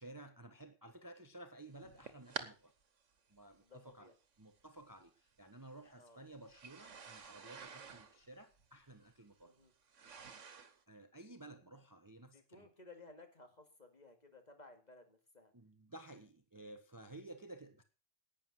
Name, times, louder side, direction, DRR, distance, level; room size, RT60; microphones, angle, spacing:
voice 1, 0.0-2.7 3.3-4.1 4.4-9.5 10.9-12.7 15.5-17.8, right 2 dB, 20° right, 1.0 m, -54 dB
sound 1, 1.8-2.5 3.5-3.6 4.8-4.9 6.5-10.8, right 6 dB, 85° right, 1.6 m, -49 dB
voice 2, 3.6-4.1 6.0-6.2 9.4-9.7 12.3-15.5, left 3 dB, 35° left, 2.5 m, -58 dB
11.5 x 9.4 x 6.4 m
omnidirectional pair, 1.2 m